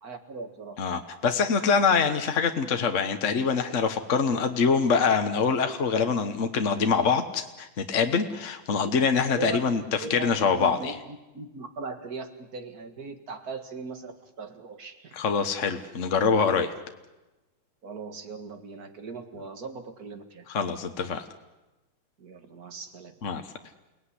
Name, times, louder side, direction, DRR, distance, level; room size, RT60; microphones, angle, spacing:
voice 1, 0.0-0.8 8.8-8.9 9.4-9.7 10.0-15.2 17.8-20.5 22.2-23.1, right 4 dB, 50° right, 8 dB, 2.3 m, -39 dB
voice 2, 0.8-9.8 10.1-10.9 15.2-16.7 20.5-21.2 23.2-23.4, left 5 dB, 45° left, 6 dB, 1.4 m, -24 dB
29.5 x 18.0 x 9.9 m, 1.1 s
omnidirectional pair, 2.2 m